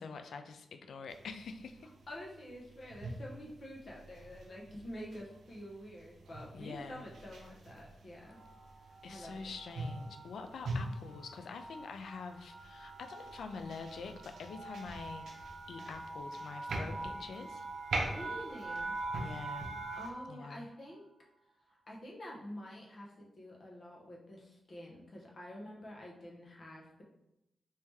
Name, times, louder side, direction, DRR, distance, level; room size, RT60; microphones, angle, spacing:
voice 1, 0.0-1.9 6.5-7.1 9.0-15.3 15.7-17.6 19.2-19.7 20.3-20.7, left 5 dB, 90° left, 7 dB, 0.3 m, -46 dB
sound 1, 1.1-20.1, right 2 dB, 85° right, 0.6 m, -45 dB
voice 2, 2.1-8.4 9.1-9.3 18.1-19.0 20.0-21.0 21.9-27.0, equal, 40° left, -3 dB, 0.8 m, -48 dB
sound 2, 8.2-20.3, right 2 dB, 55° right, 0.8 m, -45 dB
3.1 x 2.8 x 3.4 m, 0.84 s
wide cardioid pair, 150°, 0 cm